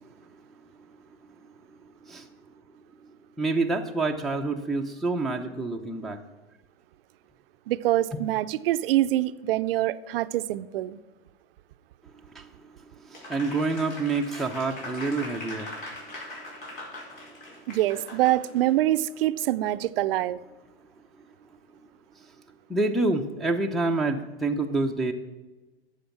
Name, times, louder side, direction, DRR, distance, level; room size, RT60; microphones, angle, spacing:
voice 1, 3.4-6.2 12.3-12.5 13.1-15.7 22.7-25.1, right 3 dB, ahead, 0.7 m, -27 dB
voice 2, 7.7-11.0 17.7-20.4, right 14 dB, 65° right, 0.6 m, -25 dB
Applause, 13.1-18.7, left 2 dB, 60° left, 4.2 m, -41 dB
11.5 x 7.2 x 5.9 m
hypercardioid pair, 120°, 31 cm